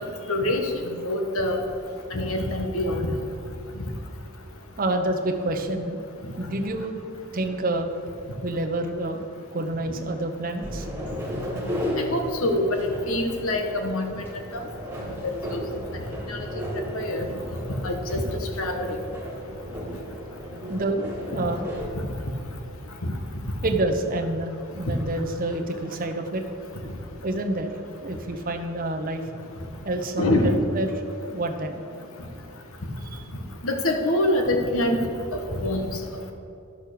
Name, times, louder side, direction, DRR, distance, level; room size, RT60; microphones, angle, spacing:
voice 1, 0.3-1.6 2.1-3.1 12.0-14.1 14.5-14.6 15.2-15.6 16.3-16.5 16.9-17.3 17.8-18.2 18.6-19.0 23.0-23.1 30.2-30.6 33.6-35.0 35.3-35.8, left 1 dB, 70° left, 4 dB, 1.3 m, -25 dB
voice 2, 4.8-6.0 6.4-7.0 7.3-7.9 8.4-9.2 9.5-10.9 20.7-21.7 23.6-26.4 27.2-27.7 28.0-29.2 29.8-30.9 31.3-31.8 33.0-33.2, right 1 dB, 40° right, 4 dB, 0.9 m, -28 dB
sound 1, 10.6-21.9, equal, 10° right, 1.8 m, -34 dB
11.0 x 6.3 x 6.7 m, 2.6 s
head